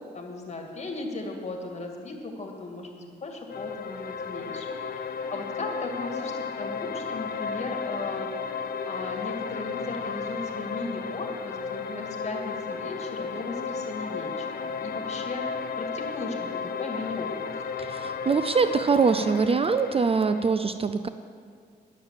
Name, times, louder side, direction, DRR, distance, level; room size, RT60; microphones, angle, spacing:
voice 1, 0.1-17.3, left 2 dB, 40° left, 2 dB, 2.0 m, -37 dB
sound 1, 3.5-20.5, left 5 dB, 55° left, 0.7 m, -34 dB
voice 2, 17.8-21.1, right 5 dB, 30° right, 10 dB, 0.4 m, -23 dB
10.5 x 7.3 x 7.4 m, 2.1 s
cardioid pair, 80°, 18 cm